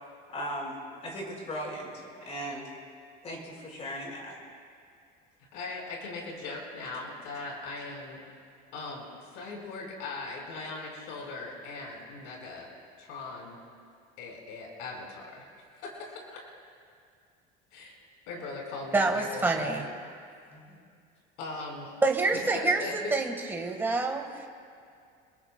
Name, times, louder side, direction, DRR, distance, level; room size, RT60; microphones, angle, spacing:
voice 1, 0.3-2.7 3.2-4.4 18.3-18.4 20.5-20.8, equal, 35° left, -1 dB, 4.7 m, -38 dB
voice 2, 5.5-8.2 8.7-12.7 13.0-13.6 14.2-15.4 15.7-16.4 17.7-17.9 18.3-19.8 21.4-21.9 22.3-23.1, left 3 dB, 80° left, -1 dB, 4.4 m, -39 dB
voice 3, 18.9-19.8 22.0-22.8 23.1-24.5, right 3 dB, 10° right, 2 dB, 1.5 m, -27 dB
27.0 x 22.0 x 2.2 m, 2.3 s
cardioid pair, 150°, 20 cm